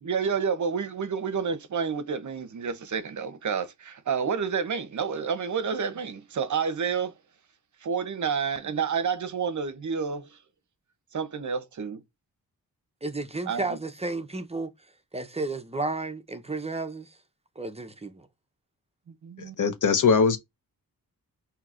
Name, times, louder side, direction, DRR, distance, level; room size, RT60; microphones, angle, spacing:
voice 1, 0.0-7.1 7.8-10.3 11.1-12.0 13.5-13.8 19.2-19.5, right 6 dB, 55° right, 0.8 m, -29 dB
voice 2, 13.0-14.7 15.1-17.1 17.6-18.3, right 3 dB, 15° right, 0.7 m, -32 dB
voice 3, 19.4-20.4, left 5 dB, 55° left, 1.0 m, -21 dB
5.6 x 2.8 x 2.5 m
cardioid pair, 75°, 37 cm